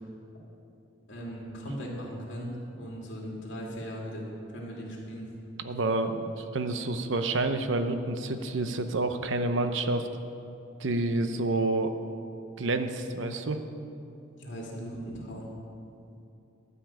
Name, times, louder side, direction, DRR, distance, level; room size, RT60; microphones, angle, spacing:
voice 1, 1.1-5.3 14.4-15.5, equal, 65° left, -3 dB, 2.6 m, -38 dB
voice 2, 5.6-10.1 10.8-11.9 12.6-13.6, right 2 dB, 70° right, 8 dB, 0.7 m, -28 dB
12.5 x 5.6 x 8.7 m, 2.7 s
head